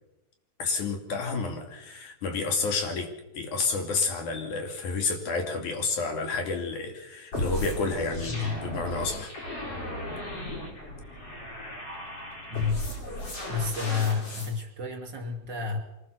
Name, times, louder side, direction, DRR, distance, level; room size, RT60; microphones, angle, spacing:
voice 1, 0.6-9.3, left 4 dB, 80° left, 4 dB, 4.0 m, -30 dB
sound 1, 7.3-14.5, left 1 dB, 50° left, 5.7 m, -35 dB
voice 2, 13.5-15.8, left 6 dB, 35° right, 3 dB, 3.2 m, -30 dB
24.5 x 19.5 x 6.8 m, 0.93 s
omnidirectional pair, 3.4 m